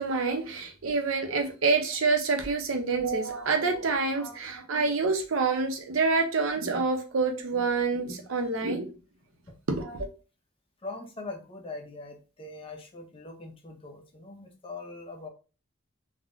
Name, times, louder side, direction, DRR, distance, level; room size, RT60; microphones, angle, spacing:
voice 1, 0.0-8.9 9.7-10.1, right 4 dB, 75° right, 0.6 m, -27 dB
voice 2, 10.8-15.3, left 3 dB, 25° left, 0.5 m, -41 dB
3.5 x 2.1 x 2.4 m
head